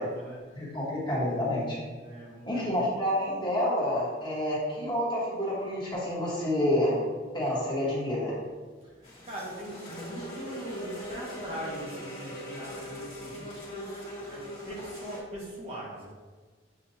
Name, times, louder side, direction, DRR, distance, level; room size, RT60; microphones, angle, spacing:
voice 1, 0.0-0.6 2.0-2.8 8.8-16.1, equal, 35° right, -5 dB, 0.9 m, -41 dB
voice 2, 0.5-1.8 2.4-7.0 7.3-8.4, left 1 dB, 25° left, -7 dB, 1.3 m, -28 dB
sound 1, 9.0-15.2, equal, 50° left, 1.5 m, -41 dB
7.4 x 2.5 x 2.8 m, 1.4 s
head